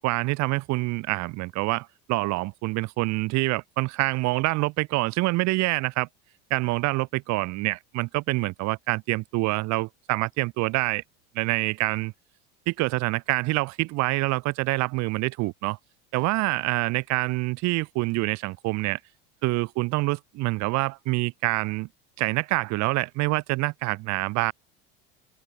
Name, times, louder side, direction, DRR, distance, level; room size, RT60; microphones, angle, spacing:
voice 1, 0.0-6.1 6.5-11.0 11.3-12.1 12.7-15.8 16.1-19.0 19.4-21.9 22.2-24.5, right 22 dB, 65° right, 4.4 m, -26 dB
open air
hypercardioid pair, 85°, 30 cm